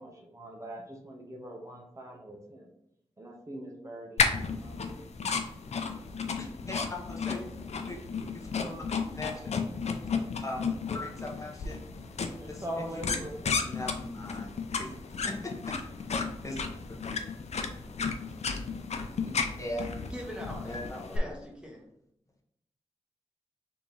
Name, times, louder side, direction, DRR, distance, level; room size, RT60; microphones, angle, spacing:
voice 1, 0.0-2.7 3.2-4.2 4.6-5.0 12.4-13.6, equal, 30° right, -1 dB, 0.8 m, -42 dB
sound 1, 4.2-21.2, left 5 dB, 80° left, 0.5 m, -33 dB
voice 2, 6.3-7.5 7.9-8.0 8.6-8.9 9.1-9.7 10.4-11.8 12.5-12.6 13.6-14.5 14.8-14.9 15.2-15.8 16.4-16.6 17.1-17.2 19.3-19.9 20.6-21.2, left 1 dB, 30° left, -1 dB, 0.9 m, -39 dB
voice 3, 20.0-20.8 21.1-21.9, equal, 10° right, 0 dB, 1.2 m, -42 dB
3.5 x 2.9 x 3.9 m, 0.77 s
cardioid pair, 60°, 11 cm